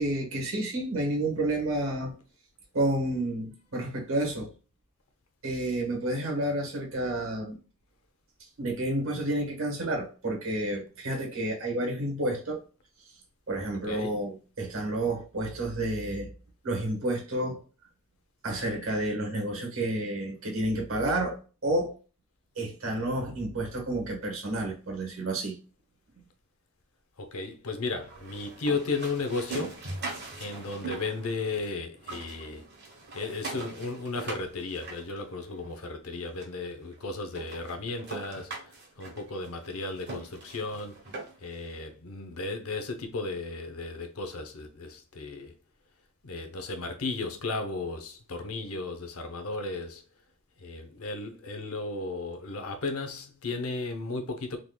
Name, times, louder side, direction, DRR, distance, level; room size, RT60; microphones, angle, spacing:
voice 1, 0.0-2.1 2.7-4.5 5.4-7.6 8.6-12.6 13.5-16.3 16.6-17.6 18.4-21.9 22.6-25.6, right 1 dB, 65° right, 1.2 m, -30 dB
voice 2, 27.2-29.8 30.3-32.6 33.1-41.0 41.4-45.5 46.2-50.0 50.6-54.6, left 3 dB, 80° left, 0.7 m, -35 dB
sound 1, 28.0-31.7 32.0-35.7 36.4-36.5 36.9-37.0 37.3-41.6, right 3 dB, 50° right, 1.0 m, -41 dB
3.7 x 3.1 x 2.2 m
head